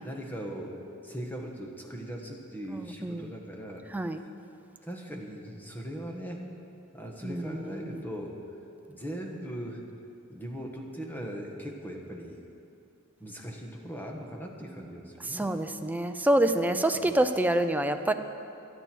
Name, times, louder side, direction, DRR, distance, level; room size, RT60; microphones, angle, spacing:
voice 1, 0.0-3.8 4.8-6.4 6.9-8.4 8.9-9.8 10.3-12.4 13.2-15.5 16.9-17.1, equal, 10° left, 0 dB, 1.5 m, -39 dB
voice 2, 2.8-3.3 3.9-4.2 7.2-7.6 7.8-8.0 15.3-18.1, right 1 dB, 10° right, 7 dB, 0.5 m, -26 dB
26.0 x 9.2 x 4.6 m, 2.7 s
head